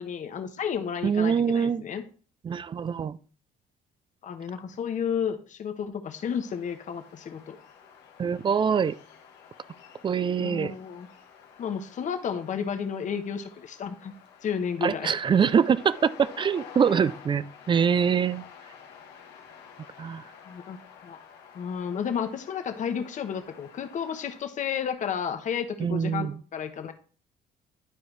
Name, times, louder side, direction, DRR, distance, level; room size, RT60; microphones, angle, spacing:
voice 1, 0.0-2.0 4.2-7.6 10.4-11.1 11.6-14.1 14.4-15.1 16.9-17.0 20.5-20.8 21.0-21.2 21.5-26.9, left 7 dB, 50° left, 1.1 m, -32 dB
voice 2, 1.0-1.8 2.4-3.2 8.2-8.9 10.0-10.7 14.8-18.4 20.0-20.2 25.8-26.4, right 7 dB, 30° right, 0.4 m, -24 dB
sound 1, 6.2-24.4, left 7 dB, 85° left, 1.5 m, -50 dB
12.0 x 4.6 x 3.3 m
cardioid pair, 110°, 17 cm